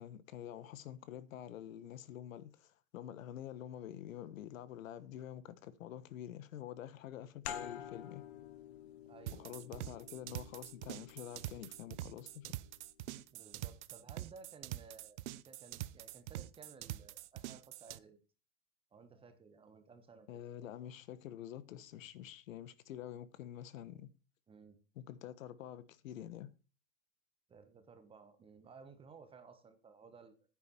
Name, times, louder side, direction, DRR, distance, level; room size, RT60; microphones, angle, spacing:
voice 1, 0.0-8.2 9.4-12.4 20.3-24.1 24.9-26.5, left 11 dB, 70° left, 1.2 m, -47 dB
sound 1, 7.4-12.7, left 9 dB, 50° left, 1.4 m, -50 dB
voice 2, 9.0-9.7 13.3-18.2 18.9-20.4 24.5-24.8 27.5-30.4, right 5 dB, 15° right, 1.3 m, -57 dB
sound 2, 9.3-18.0, right 15 dB, 55° right, 0.7 m, -45 dB
9.7 x 8.8 x 4.3 m
supercardioid pair, 145°, 41 cm